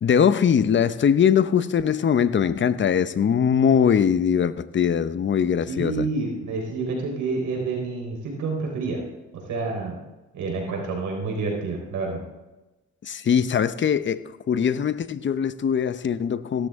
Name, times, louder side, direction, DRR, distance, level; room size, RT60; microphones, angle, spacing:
voice 1, 0.0-6.1 13.0-16.7, left 7 dB, 40° left, 0.7 m, -21 dB
voice 2, 5.7-9.0 9.5-10.0 10.3-12.2, right 3 dB, 80° right, 4.3 m, -28 dB
16.5 x 13.0 x 3.6 m
cardioid pair, 90°, 30 cm